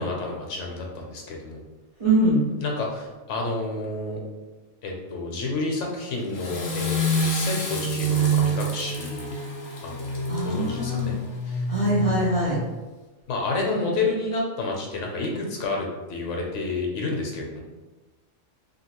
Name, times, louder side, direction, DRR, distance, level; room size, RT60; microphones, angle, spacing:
voice 1, 0.0-1.6 2.6-4.2 4.8-9.3 9.8-11.1 11.4-11.6 12.0-12.4 13.3-17.6, left 3 dB, 75° left, 0 dB, 0.9 m, -30 dB
voice 2, 2.0-2.5 10.3-11.1 11.7-12.6, right 1 dB, 50° right, -7 dB, 0.4 m, -23 dB
Water / Toilet flush, 6.1-11.4, left 3 dB, 55° left, 0.5 m, -36 dB
sound 1, 6.5-12.7, right 2 dB, 80° right, 1.0 m, -27 dB
2.8 x 2.4 x 2.9 m, 1.2 s
omnidirectional pair, 1.3 m